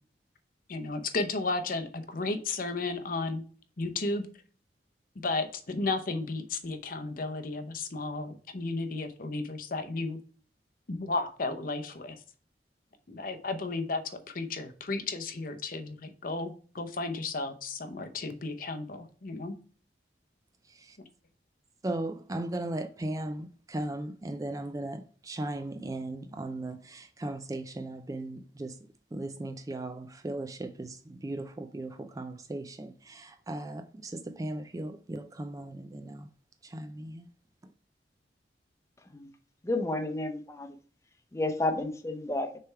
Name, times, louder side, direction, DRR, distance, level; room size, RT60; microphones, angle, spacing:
voice 1, 0.7-3.4 3.8-4.3 5.2-10.2 10.9-12.2 13.1-19.6, left 3 dB, 50° left, 0.8 m, -33 dB
voice 2, 21.8-28.7 29.1-36.3 36.6-37.3, right 1 dB, 20° right, 0.4 m, -37 dB
voice 3, 39.6-40.7 41.3-42.5, left 2 dB, 15° left, 0.7 m, -31 dB
6.5 x 3.4 x 4.5 m
head